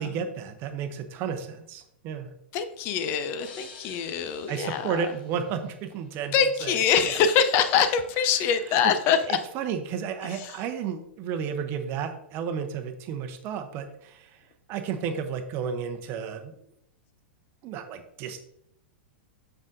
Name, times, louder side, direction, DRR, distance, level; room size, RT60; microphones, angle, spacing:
voice 1, 0.0-2.3 4.5-6.3 6.6-6.7 7.1-7.2 9.1-14.3 14.7-16.5 17.6-18.4, right 7 dB, 35° right, 8 dB, 0.8 m, -32 dB
voice 2, 2.5-5.1 6.3-9.4 10.3-10.6, left 7 dB, 35° left, 9 dB, 0.6 m, -24 dB
sound 1, 3.4-6.2, left 4 dB, 55° left, 1.8 m, -49 dB
7.3 x 6.3 x 2.6 m, 0.75 s
figure-of-eight pair, 100°, 6 cm